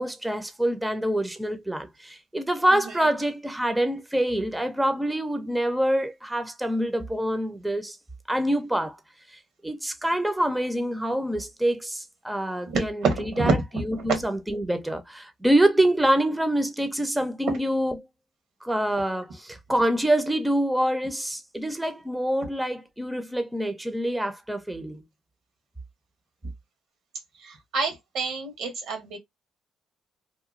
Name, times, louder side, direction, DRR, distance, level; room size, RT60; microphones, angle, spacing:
voice 1, 0.0-8.0 8.3-9.0 9.3-18.0 18.6-25.0, right 1 dB, 5° right, 0.5 m, -26 dB
voice 2, 12.7-13.5 27.4-29.2, right 4 dB, 85° right, 1.3 m, -27 dB
2.9 x 2.2 x 2.4 m
cardioid pair, 90°, 0 cm